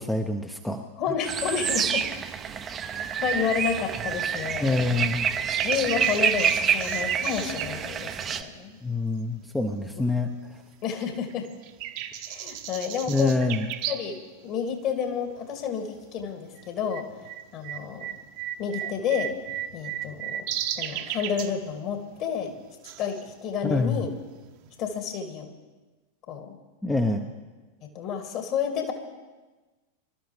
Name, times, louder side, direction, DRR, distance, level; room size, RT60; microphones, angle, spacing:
voice 1, 0.0-0.8 2.5-2.7 4.6-5.3 8.8-10.6 13.1-13.7 23.6-24.0 26.8-27.2, left 2 dB, 5° left, 4 dB, 0.9 m, -26 dB
voice 2, 1.0-2.0 3.2-5.0 5.6-8.8 10.8-11.5 12.3-13.3 13.9-17.1 17.5-18.1 18.6-19.3 19.7-20.5 20.8-22.5 23.0-24.1 24.8-25.5 26.3-26.6 27.8-28.9, left 7 dB, 40° left, 4 dB, 2.4 m, -30 dB
sound 1, 1.2-8.4, right 7 dB, 25° right, 0.8 m, -27 dB
sound 2, 5.5-9.4 9.9-10.8 11.0-14.2 14.5-14.6 15.3-15.6 15.9-24.9, right 11 dB, 45° right, 1.1 m, -36 dB
25.0 x 12.5 x 3.3 m, 1.3 s
figure-of-eight pair, 90°, 0 cm